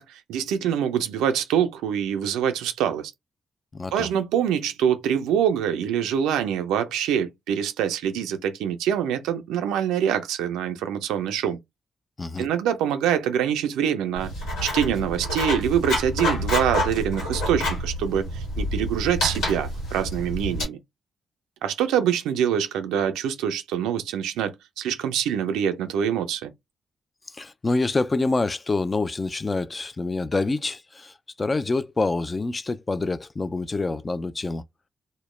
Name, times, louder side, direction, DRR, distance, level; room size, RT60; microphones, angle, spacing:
voice 1, 0.0-3.1 3.9-11.6 12.4-20.8 21.6-26.5, right 9 dB, 85° right, 0.4 m, -25 dB
voice 2, 3.7-4.1 12.2-12.5 27.3-34.6, left 3 dB, 35° left, 0.3 m, -26 dB
Writing, 14.2-20.6, left 1 dB, 90° left, 1.3 m, -28 dB
2.1 x 2.0 x 3.1 m
supercardioid pair, 45°, 0 cm